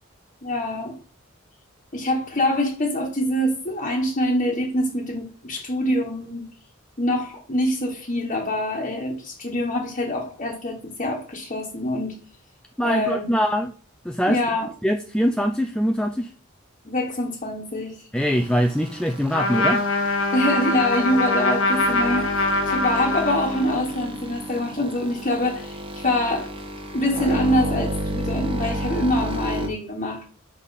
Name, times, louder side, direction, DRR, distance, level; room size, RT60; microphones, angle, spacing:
voice 1, 0.4-1.0 1.9-6.4 7.0-12.2 12.8-13.3 14.3-14.7 16.8-18.1 20.3-26.5 26.9-30.2, left 1 dB, 40° left, 1.3 m, -25 dB
voice 2, 12.8-13.7 14.0-14.4 14.8-16.3 18.1-20.2, equal, 5° left, 0.5 m, -23 dB
sound 1, 18.2-29.7, right 1 dB, 25° right, 1.4 m, -32 dB
Trumpet, 19.3-23.9, left 2 dB, 90° left, 1.4 m, -23 dB
6.5 x 5.5 x 4.1 m
head